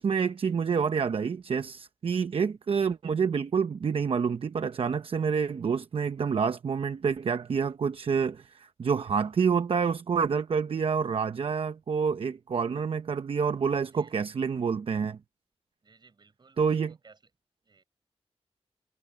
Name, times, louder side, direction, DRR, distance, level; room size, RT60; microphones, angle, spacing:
voice 1, 0.0-15.2 16.6-16.9, right 6 dB, 60° right, 0.8 m, -28 dB
voice 2, 13.9-14.4 15.8-17.3 17.6-17.8, right 4 dB, 45° right, 6.6 m, -59 dB
wide cardioid pair, 135°, 11 cm